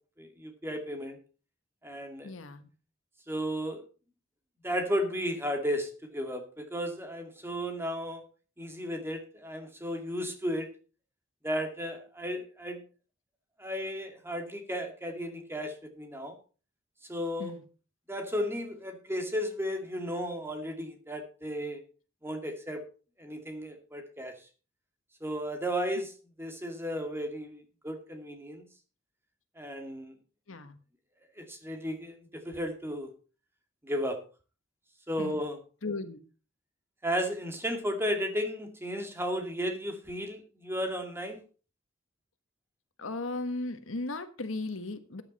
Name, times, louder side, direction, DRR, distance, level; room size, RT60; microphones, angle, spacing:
voice 1, 0.2-1.2 1.8-2.3 3.3-3.8 4.6-8.2 8.6-10.7 11.4-12.8 13.6-16.3 17.1-17.5 18.1-21.8 22.2-22.8 23.2-24.3 25.2-26.1 26.4-28.6 29.6-30.1 31.4-33.1 33.8-34.2 35.1-35.6 37.0-41.4, equal, 10° right, 4 dB, 2.3 m, -34 dB
voice 2, 2.2-2.7 17.4-17.6 30.5-30.8 35.2-35.4 35.8-36.2 43.0-45.2, left 2 dB, 90° left, 10 dB, 1.4 m, -36 dB
14.0 x 9.7 x 4.2 m, 0.36 s
head